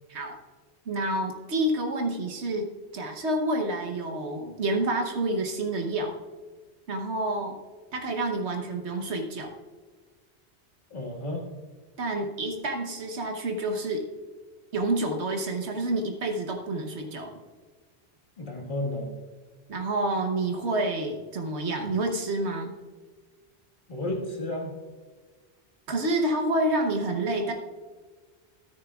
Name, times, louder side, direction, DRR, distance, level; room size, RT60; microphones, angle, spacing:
voice 1, 0.9-6.1 6.9-7.6 7.9-9.5 12.0-14.1 14.7-17.3 19.7-22.7 25.9-27.5, right 2 dB, 80° right, 3 dB, 1.3 m, -28 dB
voice 2, 10.9-11.5 18.4-19.1 23.9-24.7, left 1 dB, 50° left, -1 dB, 1.8 m, -32 dB
13.0 x 9.9 x 2.4 m, 1.4 s
omnidirectional pair, 1.1 m